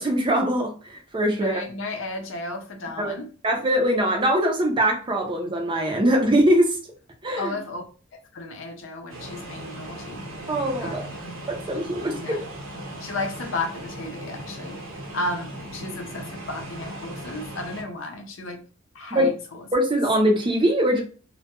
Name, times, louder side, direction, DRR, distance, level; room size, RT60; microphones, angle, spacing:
voice 1, 0.0-1.6 3.0-3.1 3.4-6.8 7.2-7.5 10.5-11.0 11.5-12.4 19.1-19.3 19.7-21.0, right 1 dB, 25° right, 2 dB, 0.5 m, -22 dB
voice 2, 1.3-3.3 7.4-7.8 8.1-10.3 10.8-11.0 11.2-11.4 12.1-12.4 13.0-14.8 15.1-18.6 18.9-19.6, left 2 dB, 65° left, 5 dB, 0.5 m, -33 dB
sound 1, 9.1-17.8, right 1 dB, 70° right, 0.8 m, -38 dB
2.2 x 2.2 x 2.8 m, 0.37 s
head